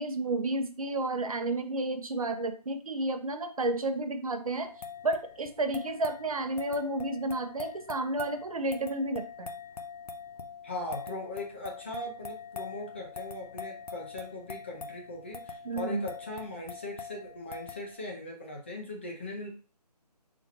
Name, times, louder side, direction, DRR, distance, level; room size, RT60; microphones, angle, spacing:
voice 1, 0.0-4.7 5.0-9.5 15.6-16.0, right 2 dB, 60° right, 7 dB, 0.8 m, -31 dB
sound 1, 4.6-18.0, left 5 dB, 70° left, 0.7 m, -44 dB
voice 2, 10.6-19.5, left 2 dB, 15° left, 0 dB, 0.5 m, -39 dB
4.4 x 4.1 x 2.9 m, 0.38 s
figure-of-eight pair, 160°, 21 cm